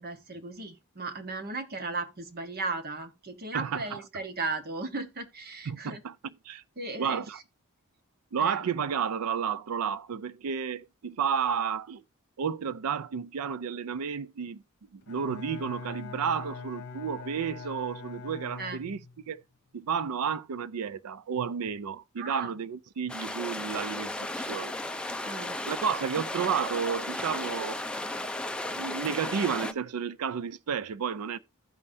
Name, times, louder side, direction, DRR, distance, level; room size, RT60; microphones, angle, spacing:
voice 1, 0.0-6.0 6.8-7.2 8.4-8.6 18.6-18.8 22.2-22.5 25.2-25.6, right 3 dB, 45° right, 1.2 m, -36 dB
voice 2, 3.5-4.0 5.7-6.6 7.0-7.4 8.3-12.0 12.4-14.6 14.9-19.0 19.3-19.4 19.7-24.7 25.6-27.8 28.8-31.4, right 7 dB, 85° right, 0.5 m, -32 dB
Bowed string instrument, 15.0-19.3, left 5 dB, 50° left, 1.0 m, -42 dB
sound 1, 23.1-29.7, left 1 dB, 5° left, 0.5 m, -35 dB
15.0 x 5.4 x 2.6 m
head